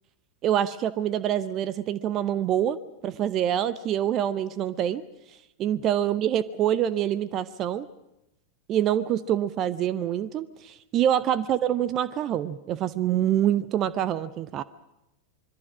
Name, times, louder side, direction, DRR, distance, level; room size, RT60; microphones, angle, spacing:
voice 1, 0.4-5.0 5.6-7.9 8.7-14.6, right 10 dB, 35° right, 17 dB, 0.8 m, -26 dB
26.0 x 22.0 x 6.2 m, 0.88 s
figure-of-eight pair, 90°, 0 cm